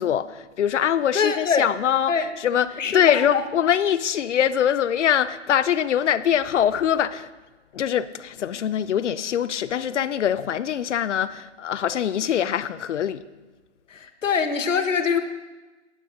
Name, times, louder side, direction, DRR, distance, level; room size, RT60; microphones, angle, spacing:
voice 1, 0.0-7.3 7.7-13.2, left 9 dB, 70° left, 0.6 m, -23 dB
voice 2, 1.1-1.6 2.1-2.2 2.8-3.4 13.9-15.2, left 6 dB, 85° left, 1.3 m, -23 dB
9.8 x 8.0 x 5.2 m
hypercardioid pair, 165°, 37 cm